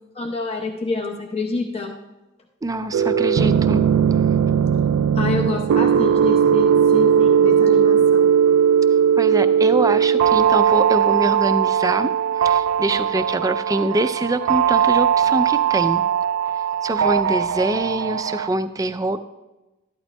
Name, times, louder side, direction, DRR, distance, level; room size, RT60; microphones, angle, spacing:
voice 1, 0.1-1.9 5.1-8.3, left 3 dB, 30° left, 0 dB, 0.9 m, -27 dB
voice 2, 2.6-3.8 9.2-16.0 16.8-19.2, right 2 dB, 15° right, 11 dB, 0.4 m, -24 dB
sound 1, 2.9-18.5, right 8 dB, 90° right, 0.3 m, -18 dB
13.0 x 11.5 x 2.2 m, 1.1 s
head